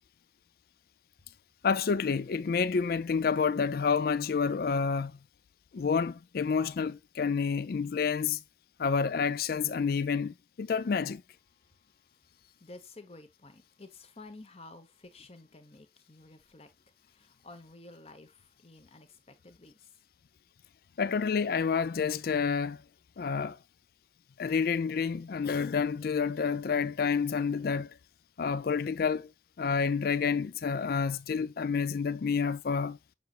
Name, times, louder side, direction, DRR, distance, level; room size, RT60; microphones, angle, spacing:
voice 1, 1.6-5.1 5.7-8.4 8.8-11.2 21.0-22.8 23.2-23.6 24.4-28.0 28.4-29.3 29.6-33.0, left 5 dB, 55° left, 0.4 m, -29 dB
voice 2, 12.3-16.7 17.0-20.0, left 2 dB, 35° left, 1.1 m, -52 dB
6.7 x 6.6 x 2.4 m
head